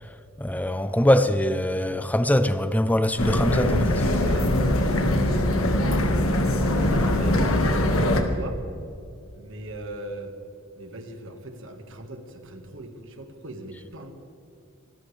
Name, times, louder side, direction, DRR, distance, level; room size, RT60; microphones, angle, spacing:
voice 1, 0.4-4.0, left 1 dB, 5° left, 0.6 m, -22 dB
sound 1, 3.2-8.2, left 1 dB, 80° left, 1.8 m, -22 dB
voice 2, 4.1-8.6 9.3-10.3 10.8-14.1, right 1 dB, 65° right, 1.8 m, -39 dB
25.5 x 13.5 x 3.4 m
head